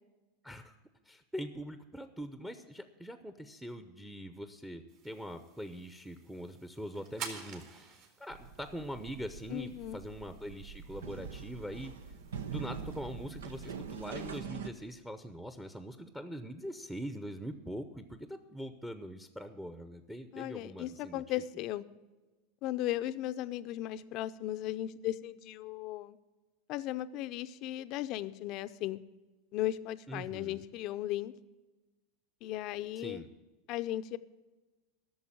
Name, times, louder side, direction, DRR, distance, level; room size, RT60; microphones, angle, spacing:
voice 1, 0.4-0.7 1.1-11.9 12.5-21.2 30.1-30.6 33.0-33.3, equal, 5° right, 9 dB, 0.8 m, -43 dB
sound 1, 4.9-14.4, right 6 dB, 55° right, 2.5 m, -52 dB
sound 2, 8.3-14.7, right 6 dB, 90° right, 0.8 m, -44 dB
voice 2, 9.5-10.0 20.3-21.9 22.6-26.2 26.7-29.0 29.5-31.3 32.4-33.2 33.7-34.2, left 14 dB, 50° left, 13 dB, 0.6 m, -36 dB
12.5 x 6.8 x 8.8 m, 1.2 s
hypercardioid pair, 110°, 0 cm